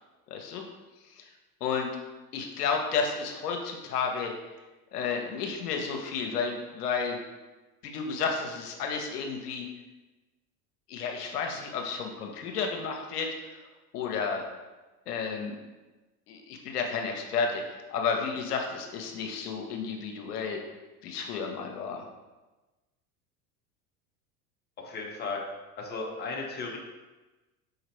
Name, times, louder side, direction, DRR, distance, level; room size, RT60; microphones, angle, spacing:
voice 1, 0.3-0.6 1.2-1.3 1.6-1.9 2.3-4.3 4.9-7.2 7.8-9.7 10.9-13.6 13.9-14.5 15.1-15.6 16.3-20.6 21.0-22.1, left 5 dB, 80° left, 2 dB, 0.7 m, -32 dB
voice 2, 24.8-25.4 25.8-26.8, left 3 dB, 20° left, -1 dB, 0.8 m, -35 dB
5.0 x 2.9 x 2.9 m, 1.2 s
hypercardioid pair, 80°, 46 cm